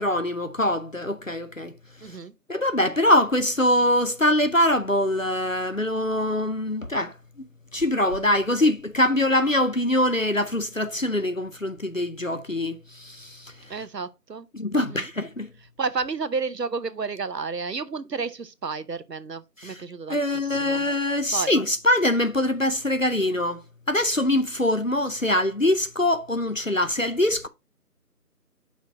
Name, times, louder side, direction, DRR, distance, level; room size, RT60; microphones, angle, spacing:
voice 1, 0.0-1.7 2.0-2.2 2.5-7.5 7.7-13.5 14.5-15.5 19.6-19.8 20.1-23.6 23.9-27.5, left 1 dB, 55° left, 0.5 m, -23 dB
voice 2, 2.0-2.3 13.7-14.5 14.7-15.1 15.8-20.2 20.5-20.8 21.3-21.5, right 4 dB, 90° right, 0.9 m, -31 dB
5.7 x 4.7 x 4.7 m
figure-of-eight pair, 180°, 48 cm